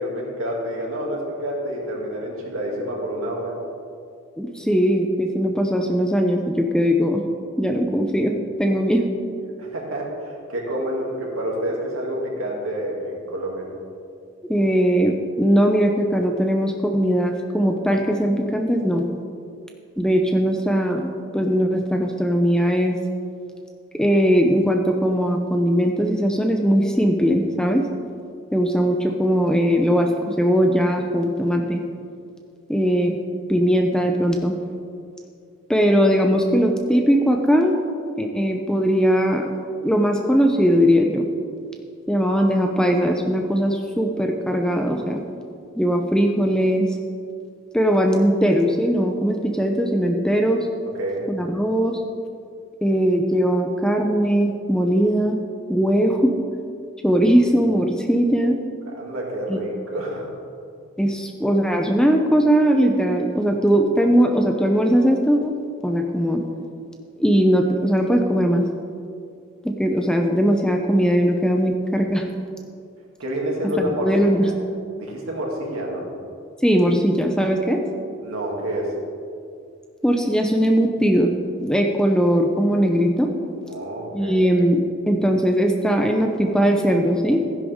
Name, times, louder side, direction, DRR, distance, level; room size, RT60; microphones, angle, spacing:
voice 1, 0.0-3.6 9.6-13.7 50.9-51.3 58.9-60.3 73.2-74.5 75.0-76.1 78.2-78.9 83.7-84.3, equal, 70° right, -2 dB, 2.7 m, -28 dB
voice 2, 4.4-7.2 7.6-9.0 14.4-19.0 20.0-23.0 23.9-27.9 28.5-31.8 32.7-33.2 33.5-34.5 35.7-37.8 38.2-39.5 39.8-41.3 42.1-45.2 45.8-46.9 47.7-50.7 51.3-52.0 52.8-55.4 55.7-56.3 57.0-58.6 59.5-59.6 61.0-65.5 65.8-66.4 67.2-68.7 69.6-72.3 73.8-74.5 76.6-77.8 80.0-81.3 81.6-83.3 84.1-84.8 85.1-87.4, equal, 5° left, 3 dB, 0.6 m, -19 dB
15.5 x 10.5 x 3.7 m, 2.4 s
head